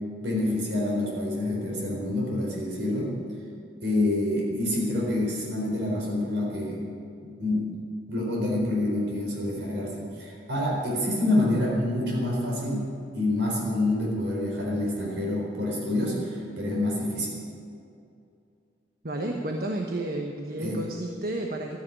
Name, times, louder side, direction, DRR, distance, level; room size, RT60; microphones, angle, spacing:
voice 1, 0.2-3.1 3.8-6.8 7.2-7.7 8.1-12.9 13.1-17.4 20.6-20.9, left 1 dB, 90° right, -3 dB, 4.1 m, -27 dB
voice 2, 19.0-21.8, right 1 dB, 55° right, 2 dB, 1.1 m, -31 dB
13.0 x 10.0 x 9.9 m, 2.5 s
head